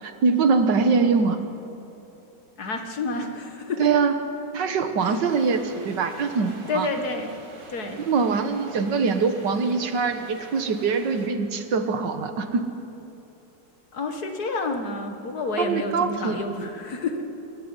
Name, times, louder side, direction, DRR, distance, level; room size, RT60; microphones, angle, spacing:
voice 1, 0.0-1.4 3.8-4.2 4.5-6.9 8.1-12.7 15.6-16.4, right 5 dB, 85° right, 8 dB, 2.0 m, -23 dB
voice 2, 2.6-3.9 5.0-5.2 6.7-7.4 7.7-8.0 13.9-17.2, left 3 dB, 60° left, 5 dB, 2.2 m, -29 dB
sound 1, 5.2-11.3, right 2 dB, 60° right, 2.6 m, -45 dB
26.0 x 11.5 x 9.8 m, 2.9 s
omnidirectional pair, 1.9 m